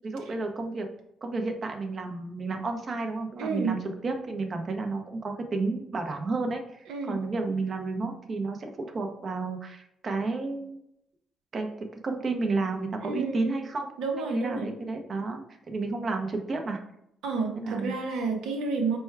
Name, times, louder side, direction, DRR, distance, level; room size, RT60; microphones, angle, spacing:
voice 1, 0.0-0.9 1.2-10.8 11.5-13.9 14.2-16.8 17.5-17.9, right 3 dB, 40° right, 4 dB, 0.7 m, -31 dB
voice 2, 3.4-3.7 6.9-7.2 13.0-13.6 14.0-14.7 17.2-19.0, right 4 dB, 85° right, 3 dB, 0.8 m, -30 dB
4.3 x 2.3 x 4.5 m, 0.78 s
cardioid pair, 90°, 0 cm